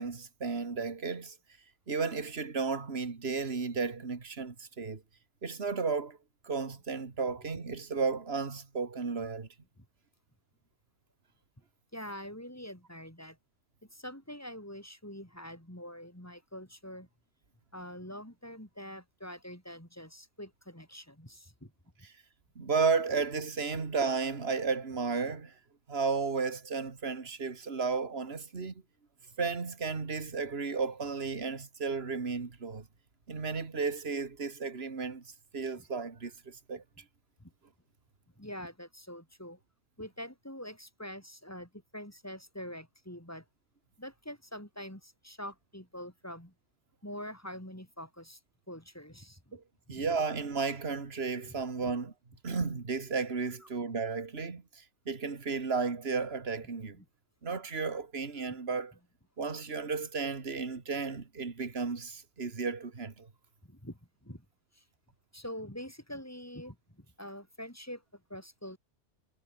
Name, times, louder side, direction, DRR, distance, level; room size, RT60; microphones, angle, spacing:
voice 1, 0.0-1.4 1.9-5.0 5.4-6.2 6.4-9.5 22.6-25.5 25.9-28.7 29.4-32.8 33.3-35.2 35.5-36.8 49.5-49.6 49.9-52.1 52.4-57.0 57.4-58.9 59.4-63.3, right 4 dB, 60° right, 2.3 m, -33 dB
voice 2, 11.9-13.4 13.9-17.1 17.7-21.7 35.8-35.9 37.4-37.5 38.4-39.6 40.0-43.5 44.0-46.5 47.0-48.4 48.7-49.6 49.9-50.1 51.5-51.6 51.8-51.9 53.6-53.7 56.9-57.1 58.5-58.6 63.6-64.5 64.7-64.8 65.3-68.8, equal, 15° left, 5.4 m, -45 dB
omnidirectional pair, 1.2 m